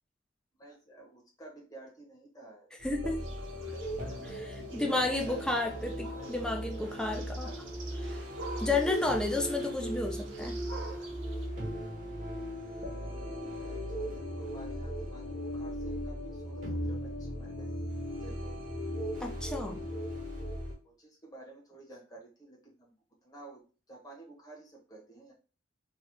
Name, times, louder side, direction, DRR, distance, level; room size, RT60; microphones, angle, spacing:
voice 1, 0.5-2.7 3.7-5.4 6.2-6.4 7.2-7.6 10.7-11.3 13.4-17.7 18.1-18.8 19.6-20.0 20.8-22.9 23.2-25.3, right 2 dB, 20° left, -3 dB, 1.0 m, -52 dB
voice 2, 2.8-3.2 4.4-4.5 4.7-7.5 8.0-8.2 8.6-10.6 19.2-19.8, left 2 dB, 5° left, 2 dB, 0.4 m, -32 dB
sound 1, 2.8-20.7, equal, 40° right, 0.9 m, -38 dB
sound 2, 3.2-11.5, right 3 dB, 80° right, 0.7 m, -49 dB
3.0 x 2.3 x 3.3 m, 0.36 s
head